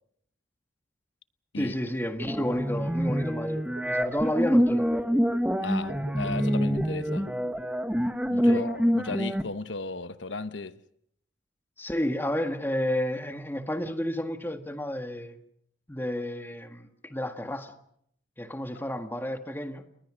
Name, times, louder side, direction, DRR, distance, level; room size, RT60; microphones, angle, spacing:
voice 1, 1.6-4.9 8.4-8.7 11.8-15.4 15.9-17.7 18.4-19.8, left 1 dB, 10° left, 1.7 m, -31 dB
sound 1, 2.0-8.9 9.2-9.3, right 2 dB, 70° right, 3.6 m, -46 dB
sound 2, 2.2-9.4, equal, 5° right, 1.2 m, -26 dB
voice 2, 5.6-7.3 8.3-10.7, left 3 dB, 85° left, 1.0 m, -35 dB
30.0 x 21.0 x 6.3 m
head